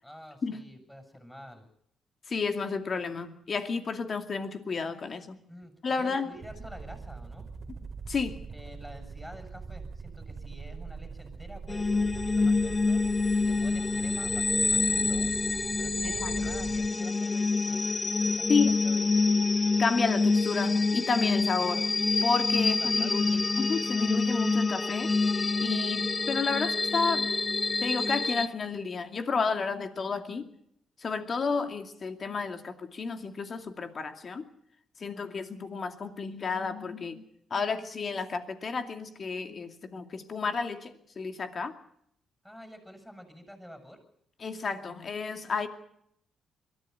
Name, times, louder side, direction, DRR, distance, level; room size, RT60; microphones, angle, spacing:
voice 1, 0.0-1.7 5.5-7.5 8.5-13.0 13.3-15.4 15.8-17.8 18.2-19.3 22.6-23.4 42.4-44.0, equal, 5° left, 5 dB, 7.3 m, -48 dB
voice 2, 2.3-5.4 5.8-6.3 8.1-8.4 16.0-16.3 18.5-18.8 19.8-21.9 22.2-25.1 25.6-27.3 27.8-30.5 31.0-34.5 35.0-37.2 37.5-41.7 44.4-45.7, left 4 dB, 45° left, 6 dB, 2.5 m, -31 dB
sound 1, 6.3-17.0, right 5 dB, 45° right, 2.2 m, -42 dB
sound 2, 11.7-28.5, left 3 dB, 25° left, 0.9 m, -27 dB
22.5 x 14.5 x 9.5 m, 0.72 s
cardioid pair, 80°, 0 cm